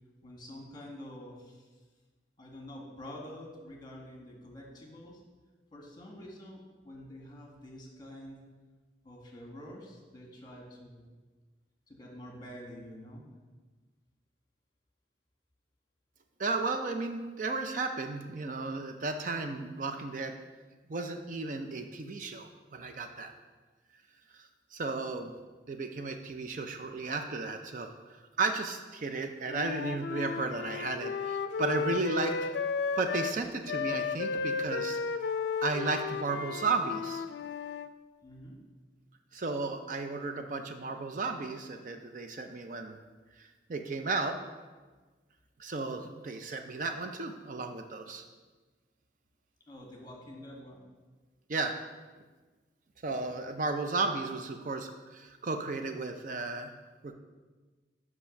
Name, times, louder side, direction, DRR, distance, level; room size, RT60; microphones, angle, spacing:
voice 1, 0.2-1.8 2.4-5.2 5.7-8.4 9.0-11.1 11.9-13.2 38.2-38.6 49.7-50.9, left 1 dB, 25° left, 0 dB, 1.5 m, -47 dB
voice 2, 16.4-20.3 20.9-23.3 24.3-25.3 25.7-27.9 28.4-32.5 33.0-35.0 35.6-37.2 39.3-43.0 43.4-44.4 45.6-48.2 51.5-51.7 53.0-56.7 57.0-57.1, right 3 dB, 45° right, 6 dB, 0.4 m, -34 dB
Wind instrument woodwind instrument, 29.5-33.4 33.7-37.9, left 5 dB, 75° left, 0.4 m, -34 dB
5.7 x 5.4 x 6.4 m, 1.3 s
head